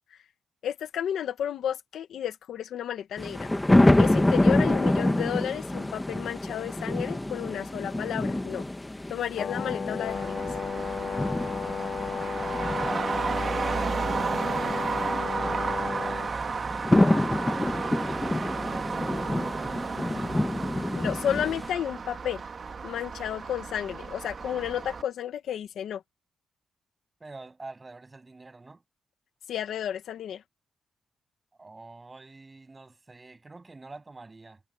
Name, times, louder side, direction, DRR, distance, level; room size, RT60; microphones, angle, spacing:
voice 1, 0.6-3.5 4.0-8.6 9.1-10.4 21.0-22.4 22.8-26.0 29.5-30.4, left 10 dB, 80° left, 1.6 m, -32 dB
sound 1, 3.2-21.7, left 1 dB, 10° left, 1.1 m, -27 dB
Brass instrument, 9.3-16.3, left 6 dB, 40° left, 2.1 m, -34 dB
Traffic noise roadway noise, 10.1-25.0, right 5 dB, 35° right, 1.7 m, -33 dB
voice 2, 12.6-17.4 18.0-20.5 27.2-28.8 31.6-34.6, right 3 dB, 20° right, 8.0 m, -47 dB
wide cardioid pair, 170°, 0 cm